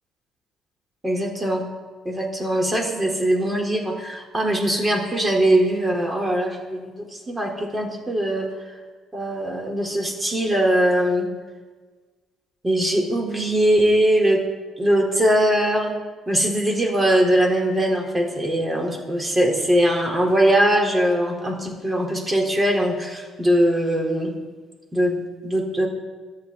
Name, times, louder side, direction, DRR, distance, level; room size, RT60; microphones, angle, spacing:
voice 1, 1.0-1.7 2.0-8.5 9.1-11.3 12.6-14.4 14.8-16.0 16.3-24.3 24.9-25.9, right 1 dB, 25° right, 1 dB, 4.2 m, -21 dB
24.0 x 8.8 x 4.2 m, 1.4 s
hypercardioid pair, 50°, 0 cm